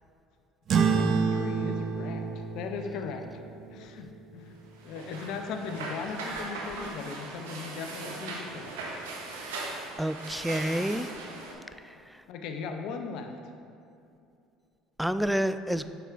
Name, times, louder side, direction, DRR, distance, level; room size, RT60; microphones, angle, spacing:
sound 1, 0.7-5.5, right 5 dB, 50° right, 0.6 m, -30 dB
voice 1, 0.9-3.3 3.7-4.6 4.8-8.7 11.9-12.0 12.3-13.3, left 5 dB, 65° left, 5 dB, 0.6 m, -38 dB
sound 2, 4.8-11.5, right 3 dB, 85° right, 0.9 m, -39 dB
voice 2, 10.0-11.1 15.0-15.8, equal, ahead, 11 dB, 0.3 m, -29 dB
9.0 x 5.9 x 2.5 m, 2.5 s
hypercardioid pair, 70°, 0 cm